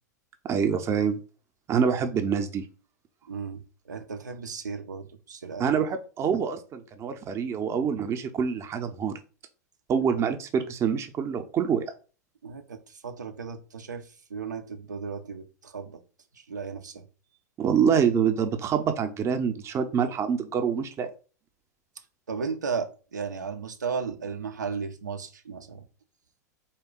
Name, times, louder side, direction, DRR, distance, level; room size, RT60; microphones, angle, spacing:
voice 1, 0.4-1.2 1.7-2.6 5.6-9.1 9.9-11.9 17.6-21.1, right 7 dB, 30° right, 0.6 m, -26 dB
voice 2, 3.3-5.7 12.4-16.0 16.3-17.1 22.3-25.8, right 5 dB, 85° right, 0.6 m, -35 dB
3.4 x 2.3 x 3.7 m
hypercardioid pair, 95°, 10 cm